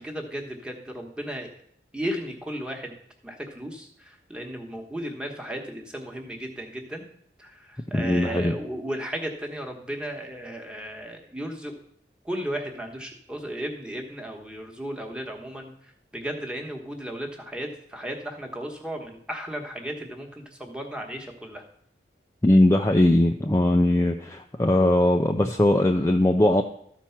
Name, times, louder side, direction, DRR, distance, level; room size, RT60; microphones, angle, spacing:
voice 1, 0.0-1.5 1.9-2.9 3.2-7.1 7.4-11.7 12.2-21.6, equal, 5° right, 2 dB, 1.2 m, -35 dB
voice 2, 7.9-8.6 22.4-26.6, left 1 dB, 15° left, 3 dB, 0.4 m, -20 dB
13.0 x 4.5 x 5.8 m, 0.68 s
head